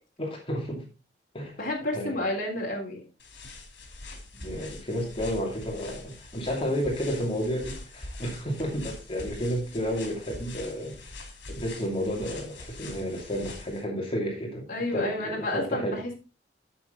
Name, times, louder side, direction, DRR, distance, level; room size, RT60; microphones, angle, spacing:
voice 1, 0.2-0.8 1.3-1.6 1.9-2.1 4.3-14.7 14.9-16.0, equal, 30° left, 0 dB, 2.5 m, -31 dB
voice 2, 1.6-3.0 14.7-16.1, left 1 dB, 50° left, -1 dB, 3.6 m, -30 dB
sound 1, 3.2-13.8, left 2 dB, 80° left, 2.8 m, -43 dB
8.4 x 7.6 x 3.8 m, 0.32 s
head